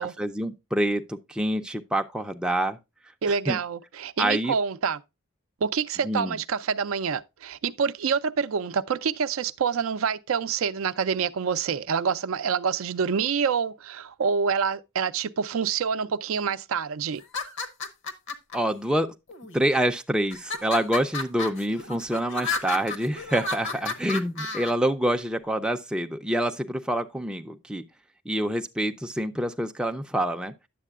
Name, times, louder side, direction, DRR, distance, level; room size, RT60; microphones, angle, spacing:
voice 1, 0.0-2.8 3.5-3.6 4.2-4.5 6.0-6.4 18.5-19.1 19.5-27.8 28.3-30.5, right 1 dB, 5° right, 0.4 m, -27 dB
voice 2, 3.2-5.0 5.6-17.2, right 6 dB, 65° right, 0.4 m, -27 dB
sound 1, 17.2-18.6 19.3-19.8 20.3-24.7, left 3 dB, 60° left, 1.0 m, -32 dB
10.0 x 7.4 x 2.3 m
head